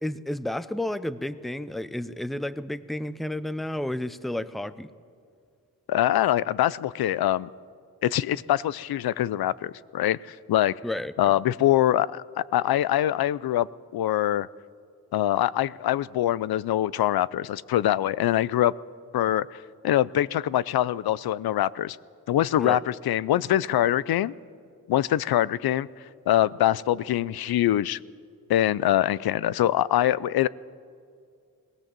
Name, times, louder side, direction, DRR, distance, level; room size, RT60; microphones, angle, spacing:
voice 1, 0.0-4.9 10.8-11.1 22.6-22.8, left 1 dB, ahead, 15 dB, 0.6 m, -31 dB
voice 2, 5.9-7.5 8.0-10.7 11.2-13.7 13.9-14.5 15.1-18.7 19.1-22.0 22.3-24.3 24.9-25.9 26.3-28.0 28.5-30.5, left 12 dB, 75° left, 21 dB, 0.6 m, -24 dB
21.0 x 17.0 x 7.5 m, 2.2 s
cardioid pair, 85°, 37 cm